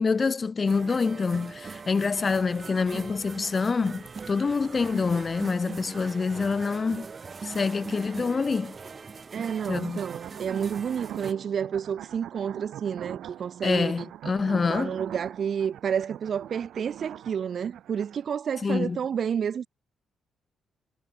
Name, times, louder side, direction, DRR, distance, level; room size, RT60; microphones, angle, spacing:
voice 1, 0.0-7.1 7.4-8.8 9.7-10.0 13.6-15.0 18.6-19.0, left 4 dB, 25° left, 0.4 m, -26 dB
sound 1, 0.6-11.3, right 5 dB, 30° right, 1.9 m, -41 dB
voice 2, 9.3-14.1 14.7-19.7, right 7 dB, 45° right, 0.4 m, -30 dB
sound 2, 9.4-18.3, right 12 dB, 80° right, 1.0 m, -43 dB
cardioid pair, 160°, 0 cm